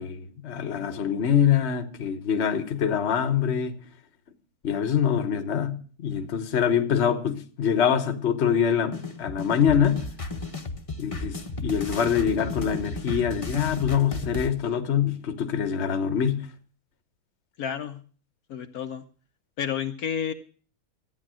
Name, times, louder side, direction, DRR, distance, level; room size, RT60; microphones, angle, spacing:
voice 1, 0.0-3.8 4.6-10.0 11.0-16.5, left 8 dB, 45° left, 1.3 m, -24 dB
sound 1, 8.9-14.5, left 2 dB, 25° left, 1.1 m, -34 dB
voice 2, 17.6-18.0 18.5-19.0 19.6-20.3, left 8 dB, 70° left, 1.2 m, -30 dB
14.0 x 9.7 x 6.2 m
omnidirectional pair, 1.7 m